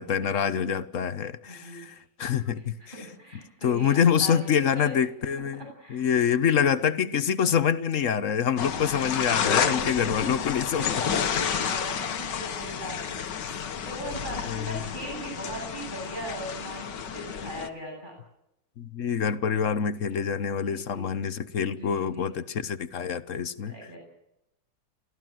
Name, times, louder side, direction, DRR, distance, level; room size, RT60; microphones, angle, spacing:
voice 1, 0.0-2.8 3.6-5.6 5.9-11.0 14.5-14.8 18.8-23.7, left 7 dB, 50° left, 1.1 m, -26 dB
voice 2, 1.5-2.0 2.5-5.0 5.6-6.0 9.6-18.1 20.6-21.2 21.6-22.4 23.6-24.0, right 1 dB, 25° right, 8.2 m, -40 dB
sound 1, 8.6-17.7, left 7 dB, 70° left, 1.9 m, -30 dB
29.0 x 15.0 x 7.7 m
omnidirectional pair, 2.0 m